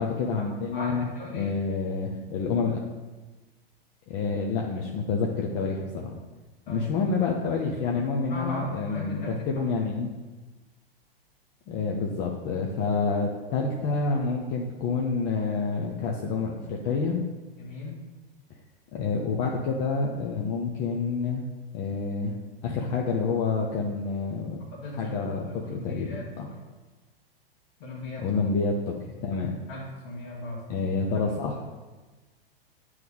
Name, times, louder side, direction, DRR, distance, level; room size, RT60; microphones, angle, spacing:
voice 1, 0.0-1.1 1.3-2.8 4.1-6.1 6.7-10.1 11.7-17.2 18.9-21.4 21.7-22.4 22.6-24.6 25.0-26.5 28.2-29.5 30.7-31.6, left 4 dB, 25° left, -1 dB, 0.5 m, -28 dB
voice 2, 0.7-1.5 6.6-6.9 8.3-9.7 17.6-18.0 24.7-25.2 25.4-26.5 27.8-28.2 29.7-30.6, left 2 dB, 50° left, -5 dB, 1.4 m, -38 dB
9.1 x 3.1 x 3.6 m, 1.3 s
figure-of-eight pair, 100°, 30 cm